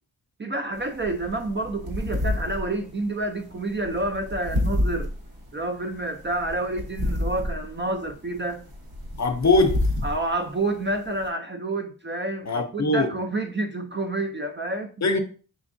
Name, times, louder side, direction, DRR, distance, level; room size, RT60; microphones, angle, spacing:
voice 1, 0.4-5.1 5.5-8.6 10.0-14.9, right 2 dB, 30° right, 0.4 m, -29 dB
sound 1, 0.7-11.3, left 1 dB, 65° right, 1.3 m, -30 dB
voice 2, 9.2-9.9 12.5-13.1 15.0-15.2, left 2 dB, 45° left, 0.6 m, -21 dB
5.0 x 3.4 x 2.6 m
wide cardioid pair, 110°, 39 cm